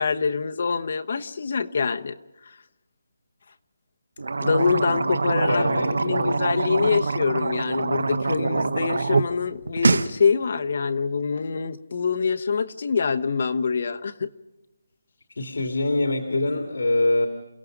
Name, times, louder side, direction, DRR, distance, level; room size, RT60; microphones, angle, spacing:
voice 1, 0.0-2.1 4.4-14.3, left 5 dB, 45° left, 7 dB, 1.1 m, -25 dB
sound 1, 4.2-9.3 9.6-10.1, right 4 dB, 80° right, 1.2 m, -24 dB
voice 2, 5.5-6.4 15.3-17.3, left 2 dB, 75° left, 6 dB, 2.3 m, -24 dB
29.0 x 17.0 x 5.2 m, 1.0 s
hypercardioid pair, 175°, 0 cm